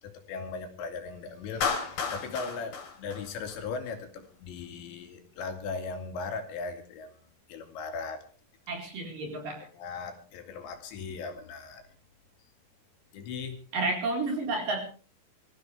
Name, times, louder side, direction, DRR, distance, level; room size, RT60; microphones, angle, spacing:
voice 1, 0.0-7.2 7.5-8.2 9.7-11.8 13.1-13.6, left 4 dB, 85° left, 5 dB, 4.6 m, -38 dB
Clapping, 1.6-3.9, left 5 dB, 65° left, 4.6 m, -33 dB
voice 2, 8.7-9.7 13.7-14.8, right 2 dB, 50° right, 1 dB, 5.8 m, -31 dB
25.5 x 15.0 x 3.4 m, 0.40 s
omnidirectional pair, 5.0 m